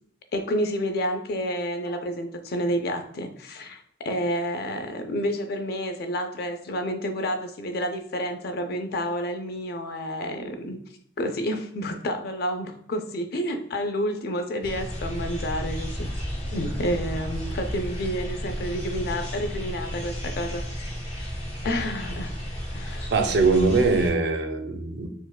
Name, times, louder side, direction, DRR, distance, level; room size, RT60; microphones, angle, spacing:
voice 1, 0.3-10.8 11.2-16.1 16.5-20.6 21.6-22.3 22.7-23.1, equal, 55° left, 6 dB, 0.4 m, -29 dB
sound 1, 14.6-24.1, equal, 35° left, 1.0 m, -33 dB
voice 2, 23.1-25.1, right 3 dB, 65° right, 5 dB, 0.5 m, -22 dB
4.5 x 2.1 x 2.2 m, 0.67 s
head